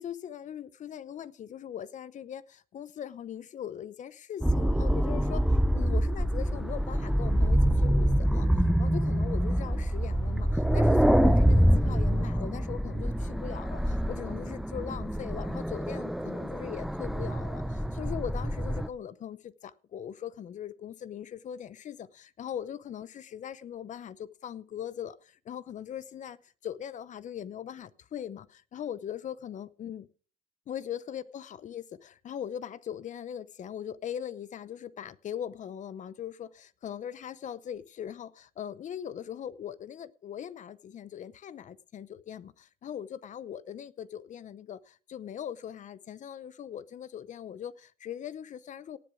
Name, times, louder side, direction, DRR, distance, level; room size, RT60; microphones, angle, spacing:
voice 1, 0.0-5.5 5.7-8.5 8.8-26.4 26.6-30.1 30.7-49.0, left 9 dB, 45° left, 0.7 m, -40 dB
sound 1, 4.4-18.9, equal, ahead, 0.5 m, -26 dB
18.0 x 7.0 x 4.9 m
cardioid pair, 110°, 17 cm